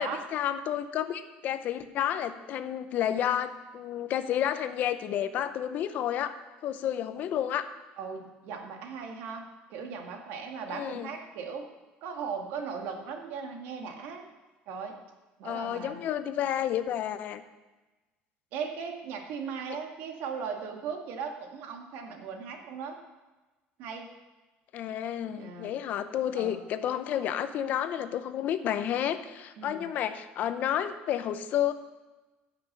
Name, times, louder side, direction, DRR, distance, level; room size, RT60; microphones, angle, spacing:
voice 1, 0.0-6.3 6.6-7.7 10.7-11.1 15.4-17.4 24.7-31.7, left 10 dB, 50° left, 11 dB, 0.7 m, -31 dB
voice 2, 8.0-11.7 12.0-14.3 14.7-14.9 15.4-16.0 18.5-23.0 23.8-24.1 25.4-25.7 26.3-26.6 29.6-29.9, right 6 dB, 70° right, 3 dB, 1.9 m, -38 dB
15.5 x 6.0 x 6.7 m, 1.1 s
cardioid pair, 160°, 4 cm